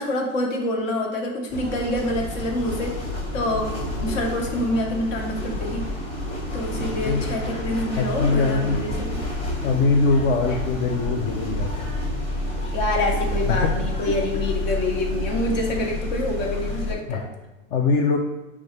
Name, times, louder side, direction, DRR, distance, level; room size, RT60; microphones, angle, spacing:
voice 1, 0.0-2.9 3.3-5.9 6.5-9.1 12.7-17.3, left 1 dB, 65° left, 1 dB, 1.2 m, -26 dB
sound 1, 1.5-16.9, left 1 dB, 15° left, 1.0 m, -29 dB
voice 2, 8.0-8.8 9.6-11.9 13.4-13.7 14.1-14.2 16.8-17.2 17.7-18.2, left 4 dB, 45° left, 1 dB, 0.5 m, -22 dB
6.1 x 2.3 x 3.1 m, 1.1 s
hypercardioid pair, 120°, 42 cm